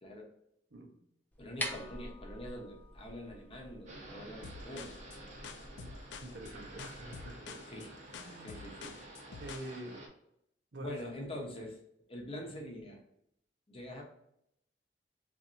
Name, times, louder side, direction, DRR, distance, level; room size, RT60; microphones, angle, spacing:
voice 1, 0.0-0.3 1.4-4.9 7.7-7.9 8.4-9.0 10.8-11.8 12.1-13.0 13.7-14.0, left 1 dB, 35° left, 0 dB, 0.8 m, -44 dB
voice 2, 0.7-1.1 5.8-5.9 6.2-7.7 8.0-8.7 9.4-10.1 10.7-11.0, right 1 dB, 85° right, 3 dB, 0.7 m, -47 dB
sound 1, 1.3-7.3, left 1 dB, 10° left, 0.4 m, -46 dB
sound 2, 3.9-10.1, right 1 dB, 45° right, 0.9 m, -51 dB
sound 3, 4.4-9.7, left 6 dB, 90° left, 0.3 m, -48 dB
4.2 x 2.6 x 2.5 m, 0.75 s
head